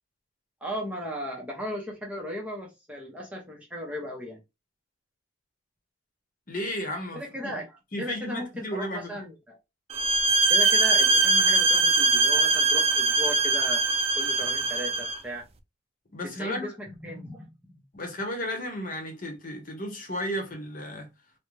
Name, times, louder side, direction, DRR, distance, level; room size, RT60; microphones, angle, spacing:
voice 1, 0.6-4.4 7.1-9.6 10.5-13.8 14.2-15.4 16.2-17.8, equal, 5° right, 0.8 m, -36 dB
voice 2, 6.5-7.5 7.9-9.2 16.1-16.7 17.9-21.1, equal, 45° left, 1.0 m, -34 dB
sound 1, 9.9-15.2, right 3 dB, 30° right, 0.4 m, -22 dB
3.8 x 2.2 x 3.2 m
head